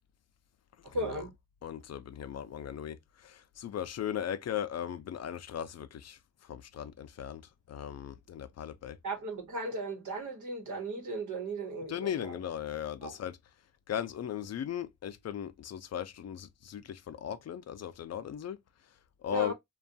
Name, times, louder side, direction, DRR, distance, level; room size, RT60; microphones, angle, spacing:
voice 1, 0.8-1.3 9.0-12.4 13.0-13.2 19.3-19.5, right 2 dB, 85° right, 1.0 m, -36 dB
voice 2, 1.6-3.0 3.2-6.2 6.5-7.4 7.7-9.0 11.9-13.4 13.9-18.6 19.2-19.5, left 10 dB, 60° left, 0.4 m, -37 dB
2.5 x 2.2 x 2.6 m
cardioid pair, 75°, 29 cm